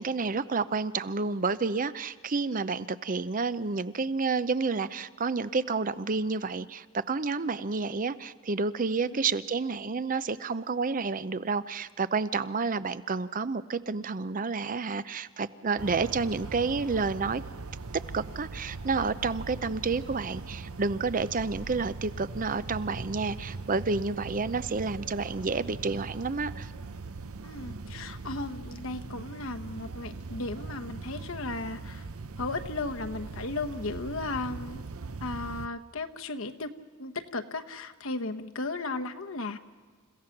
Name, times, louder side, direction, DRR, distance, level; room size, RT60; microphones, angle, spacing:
voice 1, 0.0-17.4 18.1-26.7, right 4 dB, 40° right, 15 dB, 0.6 m, -30 dB
sound 1, 15.8-35.7, right 3 dB, 80° right, 0.8 m, -40 dB
voice 2, 27.4-32.1 32.4-34.8 35.2-36.7 37.0-39.6, left 3 dB, 65° left, 6 dB, 1.2 m, -35 dB
29.5 x 16.0 x 6.0 m, 1.5 s
head